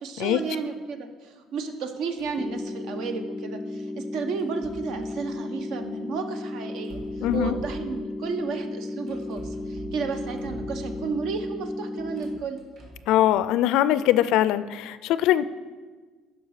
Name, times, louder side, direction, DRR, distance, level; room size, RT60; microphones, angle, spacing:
voice 1, 0.0-7.0 7.3-12.6, right 5 dB, 70° right, 7 dB, 1.0 m, -33 dB
sound 1, 2.2-2.5 4.4-5.3 6.8-8.1 9.1-11.3 12.0-13.1, right 2 dB, 50° right, 2.0 m, -43 dB
sound 2, 2.4-12.4, left 2 dB, 5° left, 0.4 m, -34 dB
voice 2, 7.2-7.6 13.1-15.5, left 12 dB, 75° left, 15 dB, 0.4 m, -22 dB
10.5 x 5.2 x 6.4 m, 1.4 s
cardioid pair, 135°, 0 cm